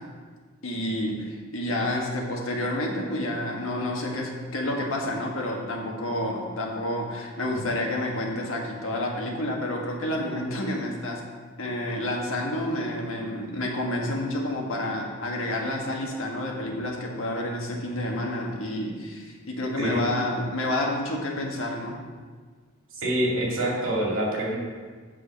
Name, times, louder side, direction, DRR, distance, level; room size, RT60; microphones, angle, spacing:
voice 1, 0.6-11.2 11.6-22.0, left 1 dB, 85° left, 0 dB, 1.5 m, -29 dB
voice 2, 23.0-24.6, right 1 dB, 90° right, -3 dB, 2.3 m, -26 dB
8.0 x 6.4 x 5.2 m, 1.5 s
head